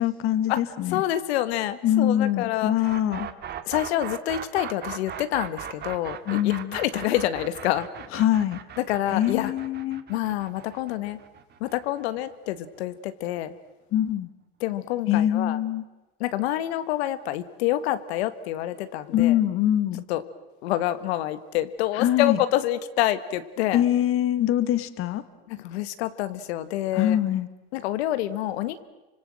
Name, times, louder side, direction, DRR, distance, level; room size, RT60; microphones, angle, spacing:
voice 1, 0.0-1.0 1.8-3.3 6.3-6.8 8.1-8.6 9.1-10.0 13.9-14.3 15.1-15.8 19.1-20.0 21.9-22.4 23.7-25.2 26.9-27.5, left 12 dB, 45° left, 13 dB, 1.5 m, -23 dB
voice 2, 0.9-2.7 3.7-7.9 8.8-9.5 10.1-11.2 11.6-13.5 14.6-15.6 16.2-19.4 20.1-20.2 20.6-23.8 25.5-27.2 27.7-28.8, left 13 dB, 85° left, 12 dB, 1.6 m, -27 dB
sound 1, 2.8-12.7, right 9 dB, 30° right, 1.9 m, -38 dB
29.5 x 25.5 x 7.7 m, 1.1 s
supercardioid pair, 140°, 31 cm